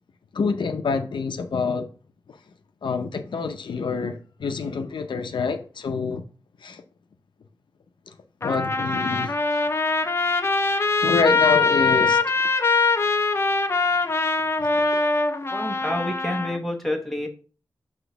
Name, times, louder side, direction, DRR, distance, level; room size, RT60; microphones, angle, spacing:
voice 1, 0.3-1.9 2.8-6.2 6.6-6.8 8.4-9.3 11.0-12.2 14.6-14.7, left 5 dB, 80° left, 0.6 m, -26 dB
Trumpet, 8.4-16.6, left 3 dB, 35° left, 0.6 m, -22 dB
voice 2, 15.5-17.3, left 1 dB, 5° left, 1.1 m, -28 dB
6.0 x 3.0 x 5.7 m
wide cardioid pair, 90°, 8 cm